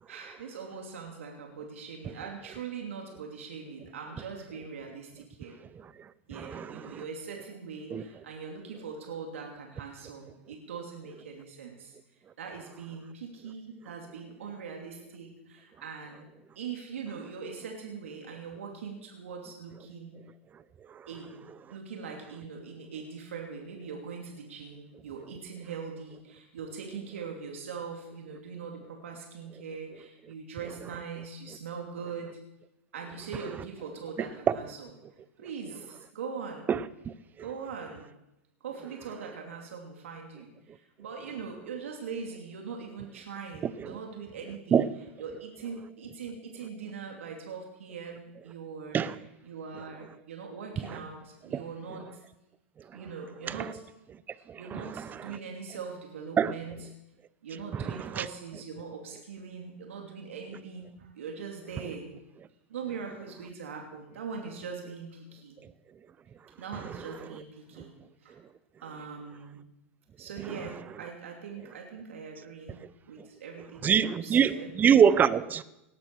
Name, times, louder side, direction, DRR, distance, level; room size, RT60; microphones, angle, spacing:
voice 1, 0.1-5.6 6.3-12.0 12.4-16.3 16.5-20.1 21.1-21.4 21.7-32.3 32.9-34.9 35.4-36.7 37.4-38.1 38.6-44.9 45.2-52.2 52.9-53.8 54.6-56.9 57.4-62.0 62.7-65.6 66.6-67.9 68.2-68.4 68.8-69.6 70.2-72.8 73.1-74.7, right 5 dB, 75° right, 2.7 m, -41 dB
voice 2, 6.5-7.0 7.9-8.0 34.5-34.6 36.7-36.8 44.7-44.9 48.9-49.1 51.5-51.6 53.5-53.6 56.4-56.5 57.7-57.8 58.2-58.3 73.8-75.6, right 8 dB, 25° right, 0.8 m, -23 dB
18.5 x 12.5 x 4.7 m
hypercardioid pair, 100°, 7 cm